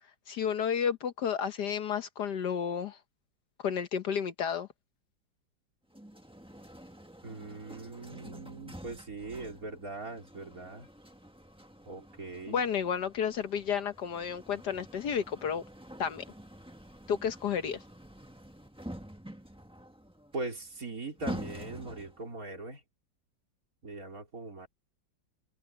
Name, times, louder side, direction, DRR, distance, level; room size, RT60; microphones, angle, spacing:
voice 1, 0.3-3.0 3.6-4.7 12.5-15.6 16.0-16.2 17.1-17.8, left 7 dB, 65° left, 1.6 m, -31 dB
sound 1, 5.9-22.3, right 1 dB, 5° right, 1.4 m, -47 dB
voice 2, 7.2-10.9 11.9-12.6 20.3-22.8 23.8-24.7, right 3 dB, 45° right, 4.3 m, -41 dB
omnidirectional pair, 2.0 m